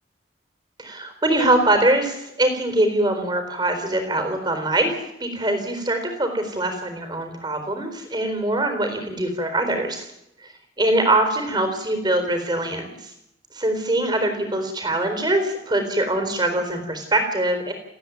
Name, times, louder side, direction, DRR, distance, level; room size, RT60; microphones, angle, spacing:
voice 1, 0.8-10.1 10.8-13.1 13.5-17.7, right 1 dB, 25° right, 7 dB, 4.1 m, -23 dB
29.5 x 9.9 x 9.4 m, 0.85 s
head